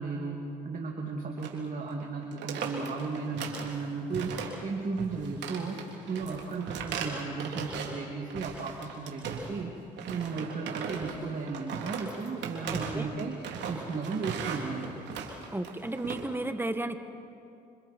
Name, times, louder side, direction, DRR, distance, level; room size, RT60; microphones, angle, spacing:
voice 1, 0.0-4.4 4.6-5.8 6.1-9.7 10.1-13.4 13.7-15.0, right 4 dB, 45° right, 0 dB, 2.7 m, -35 dB
sound 1, 1.4-1.6 1.9-2.0 2.3-3.8 4.1-4.7 5.0-8.0 8.3-9.6 10.0-16.2, right 6 dB, 70° right, 3.4 m, -38 dB
voice 2, 12.7-13.1 15.5-17.0, right 1 dB, 10° right, 8 dB, 1.5 m, -33 dB
27.0 x 26.5 x 4.6 m, 2.5 s
supercardioid pair, 70°, 19 cm